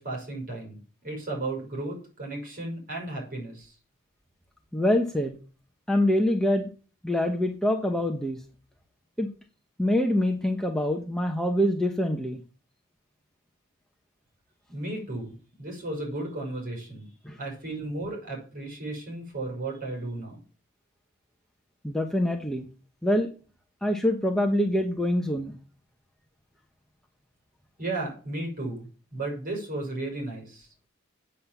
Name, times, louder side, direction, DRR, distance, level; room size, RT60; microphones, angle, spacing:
voice 1, 0.0-3.7 14.7-17.1 17.4-20.4 27.8-30.7, right 2 dB, 40° right, -1 dB, 5.9 m, -34 dB
voice 2, 4.7-5.4 5.9-6.7 7.0-8.4 9.2-9.3 9.8-12.4 17.2-17.4 21.8-22.7 23.0-23.3 23.8-25.5, left 1 dB, 5° left, 2 dB, 0.9 m, -25 dB
8.4 x 7.6 x 7.1 m, 0.38 s
head